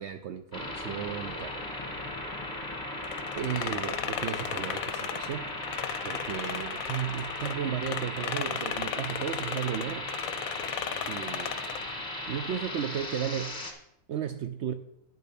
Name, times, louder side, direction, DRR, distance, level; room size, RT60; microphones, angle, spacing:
voice 1, 0.0-1.6 3.4-5.5 6.0-10.1 11.1-11.6 11.8-13.6 14.1-14.7, right 9 dB, 70° right, 0.6 m, -34 dB
sound 1, 0.5-13.7, left 1 dB, 15° left, 1.3 m, -37 dB
sound 2, 3.0-7.5 7.8-11.9, left 10 dB, 70° left, 1.0 m, -36 dB
8.6 x 6.7 x 5.9 m
omnidirectional pair, 1.6 m